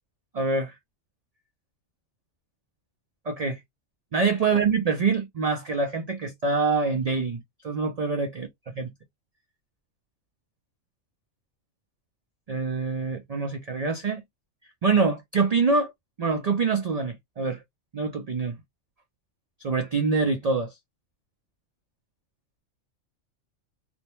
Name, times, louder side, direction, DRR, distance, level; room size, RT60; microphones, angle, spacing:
voice 1, 0.3-0.7 3.3-3.6 4.1-8.5 8.8-8.9 12.5-14.2 14.8-15.9 16.2-17.6 17.9-18.6 19.6-20.7, right 4 dB, 75° right, 0.3 m, -25 dB
2.5 x 2.1 x 2.9 m
omnidirectional pair, 1.3 m